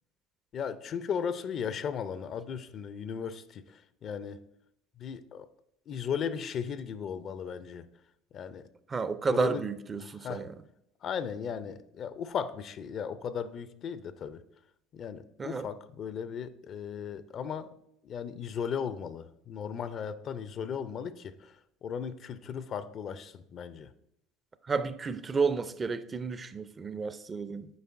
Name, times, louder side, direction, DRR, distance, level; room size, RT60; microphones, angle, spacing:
voice 1, 0.5-4.4 5.0-5.5 5.9-7.9 8.3-8.7 9.3-9.7 10.0-10.5 11.0-14.4 14.9-17.7 18.0-21.5 21.8-23.9, left 7 dB, 50° left, 0.4 m, -36 dB
voice 2, 8.9-10.5 15.4-15.7 24.7-27.7, right 5 dB, 30° right, 0.4 m, -31 dB
8.0 x 5.1 x 2.5 m
hypercardioid pair, 75°, 0 cm